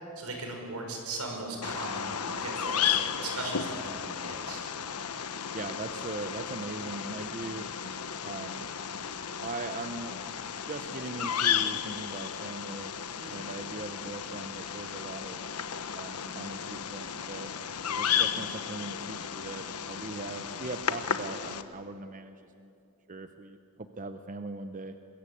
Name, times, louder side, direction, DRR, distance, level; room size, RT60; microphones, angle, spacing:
voice 1, 0.2-2.1 2.4-4.6 13.2-13.4, right 2 dB, 75° right, 2 dB, 5.6 m, -38 dB
Bird vocalization bird call bird song, 1.6-21.6, left 8 dB, 85° left, 1.1 m, -34 dB
voice 2, 5.5-7.7 8.2-8.7 9.4-10.2 10.7-12.9 13.3-15.4 15.9-17.5 17.9-22.7 23.1-25.0, right 2 dB, 35° right, 8 dB, 0.8 m, -40 dB
24.0 x 21.5 x 8.4 m, 2.6 s
head